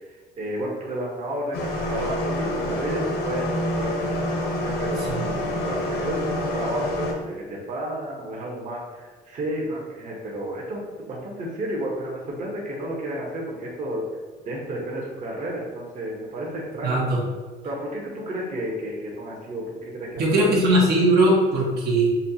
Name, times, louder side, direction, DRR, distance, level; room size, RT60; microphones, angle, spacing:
voice 1, 0.4-4.1 4.6-14.0 14.4-17.2 17.6-20.4, right 1 dB, 45° right, -4 dB, 1.0 m, -32 dB
sound 1, 1.5-7.1, left 1 dB, 70° left, 0.8 m, -27 dB
voice 2, 16.8-17.2 20.2-22.1, right 1 dB, 70° right, -3 dB, 1.1 m, -19 dB
5.4 x 2.3 x 2.8 m, 1.4 s
cardioid pair, 110°, 17 cm